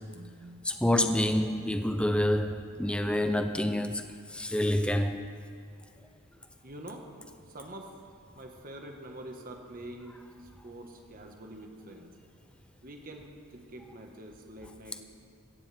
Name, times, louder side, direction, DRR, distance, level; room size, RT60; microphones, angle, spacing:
voice 1, 0.1-0.6 6.6-7.1 7.5-8.0 8.3-12.1 12.8-15.0, right 1 dB, 40° right, 2 dB, 1.5 m, -46 dB
voice 2, 0.6-5.2, left 1 dB, 5° left, 7 dB, 0.6 m, -27 dB
16.5 x 15.5 x 3.5 m, 2.5 s
head